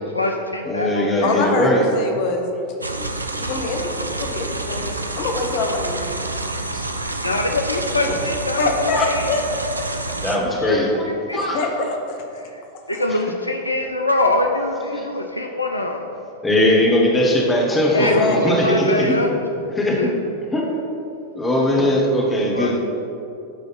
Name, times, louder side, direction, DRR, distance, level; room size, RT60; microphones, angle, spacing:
voice 1, 0.1-1.4 7.2-9.3 10.5-10.8 11.3-11.4 12.5-12.6 12.9-16.1 17.9-19.3 20.0-20.1 22.5-22.7, left 2 dB, 85° left, 3 dB, 0.4 m, -23 dB
voice 2, 0.6-1.9 3.0-3.1 3.4-3.6 6.7-6.8 8.9-9.0 10.2-11.6 14.9-15.1 16.4-19.2 19.8-20.1 20.5-20.8 21.3-22.8, left 1 dB, 15° left, -2 dB, 1.2 m, -20 dB
voice 3, 1.2-2.5 3.4-4.9 5.2-6.1 8.1-8.2 8.6-9.6 11.3-12.4 17.9-18.7, left 3 dB, 45° left, 3 dB, 0.8 m, -24 dB
sound 1, 2.8-10.4, right 2 dB, 80° right, 0.4 m, -28 dB
10.0 x 3.4 x 4.1 m, 2.7 s
figure-of-eight pair, 90°, 0 cm